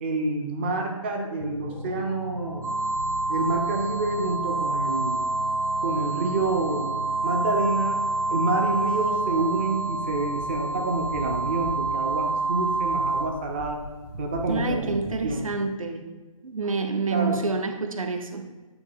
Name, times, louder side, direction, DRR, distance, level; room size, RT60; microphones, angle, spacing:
voice 1, 0.0-2.7 3.3-5.2 5.8-6.9 7.2-8.0 8.3-13.8 14.2-15.5 17.0-17.4, right 2 dB, 20° right, 2 dB, 0.4 m, -28 dB
sound 1, 1.4-10.6, left 2 dB, 90° left, 0.6 m, -39 dB
sound 2, 2.6-13.2, right 3 dB, 90° right, 1.0 m, -28 dB
sound 3, 2.9-15.3, right 1 dB, 45° right, 1.3 m, -44 dB
voice 2, 14.5-16.0 16.4-18.5, right 3 dB, 70° right, 6 dB, 0.7 m, -28 dB
9.0 x 3.2 x 3.5 m, 1.2 s
figure-of-eight pair, 145°, 18 cm